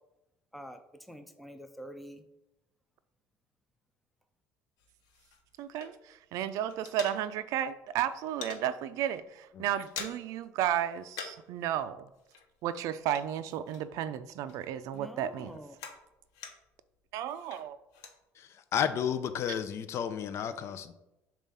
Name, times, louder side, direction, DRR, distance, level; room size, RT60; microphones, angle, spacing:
voice 1, 1.1-2.2 14.9-15.7, equal, ahead, 7 dB, 0.5 m, -46 dB
sound 1, 4.8-6.3 6.5-7.7 7.9-8.7 9.1-9.3 9.5-10.4 10.7-11.6 11.8-14.1 14.5-16.8 17.3-18.2, left 6 dB, 85° left, 0.9 m, -46 dB
voice 2, 5.6-12.1 12.6-15.6 17.1-17.8, right 10 dB, 70° right, 12 dB, 0.4 m, -33 dB
voice 3, 18.4-20.9, left 8 dB, 50° left, 11 dB, 0.5 m, -32 dB
7.2 x 2.5 x 5.5 m, 0.95 s
cardioid pair, 115°, 6 cm